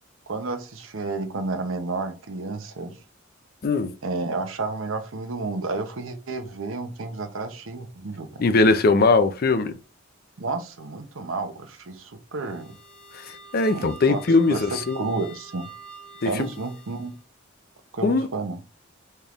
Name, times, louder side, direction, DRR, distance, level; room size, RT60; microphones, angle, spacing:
voice 1, 0.3-2.9 4.0-8.4 10.4-12.7 13.7-14.2 14.5-15.7 16.2-17.1 17.9-18.6, right 3 dB, 75° right, 0.7 m, -31 dB
voice 2, 8.4-9.7 13.1-15.0 16.2-16.5 18.0-18.3, left 3 dB, 50° left, 0.5 m, -20 dB
sound 1, 12.3-17.2, right 4 dB, 70° left, 2.1 m, -46 dB
4.4 x 3.5 x 2.4 m
head